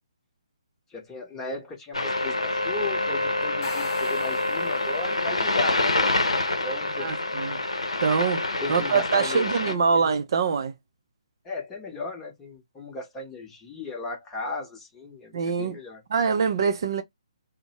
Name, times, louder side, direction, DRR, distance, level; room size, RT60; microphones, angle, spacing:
voice 1, 0.9-6.2 6.6-7.2 8.6-10.1 11.4-16.0, left 3 dB, 10° left, 0.9 m, -36 dB
sound 1, 1.9-9.7, left 2 dB, 75° left, 0.7 m, -26 dB
sound 2, 3.4-5.4, left 4 dB, 45° left, 0.9 m, -38 dB
voice 2, 7.0-7.6 8.0-8.4 8.7-10.7 15.3-15.7 16.1-17.0, right 5 dB, 45° right, 0.5 m, -24 dB
2.6 x 2.1 x 2.9 m
figure-of-eight pair, 135°, 3 cm